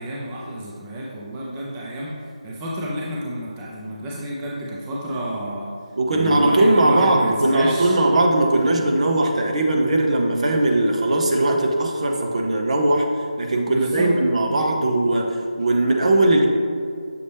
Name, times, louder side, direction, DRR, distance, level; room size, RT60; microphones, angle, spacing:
voice 1, 0.0-2.1 2.4-5.7 6.1-8.0 8.8-8.9 13.7-14.1, right 1 dB, 15° right, -5 dB, 0.6 m, -30 dB
voice 2, 6.0-13.1 13.4-16.5, right 1 dB, 55° right, 2 dB, 0.8 m, -19 dB
6.8 x 4.1 x 3.4 m, 2.2 s
figure-of-eight pair, 160°, 4 cm